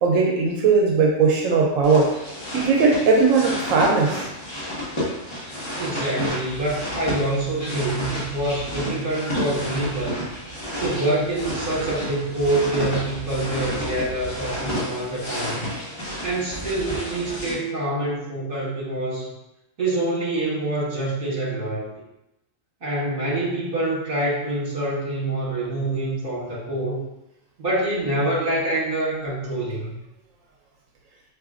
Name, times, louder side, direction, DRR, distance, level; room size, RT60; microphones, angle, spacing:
voice 1, 0.0-2.1 2.5-4.2, right 4 dB, 85° right, 0 dB, 1.0 m, -18 dB
sound 1, 1.8-17.5, equal, 20° left, 1.5 m, -31 dB
voice 2, 5.8-10.3 10.8-15.7 16.2-19.3 19.8-21.9 22.8-27.0 27.6-29.9, right 1 dB, 45° right, -6 dB, 1.5 m, -26 dB
4.8 x 2.8 x 2.4 m, 0.88 s
omnidirectional pair, 1.3 m